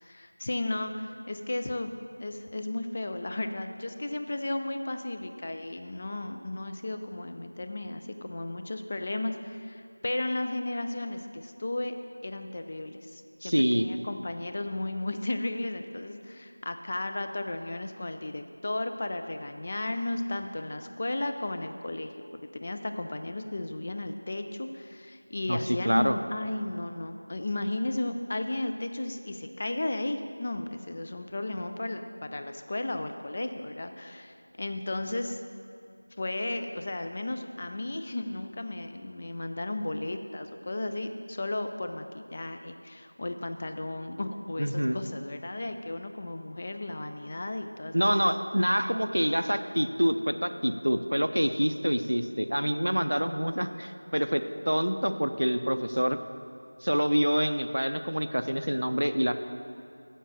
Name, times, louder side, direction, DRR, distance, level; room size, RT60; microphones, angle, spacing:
voice 1, 0.0-11.9 12.2-35.4 36.2-48.3, left 2 dB, 25° left, 6 dB, 0.3 m, -34 dB
voice 2, 13.4-13.9 25.5-25.6 25.8-26.2 44.6-45.0 47.9-56.2 56.8-59.3, equal, 80° right, 9 dB, 0.6 m, -26 dB
7.3 x 7.1 x 6.8 m, 2.5 s
figure-of-eight pair, 175°, 0 cm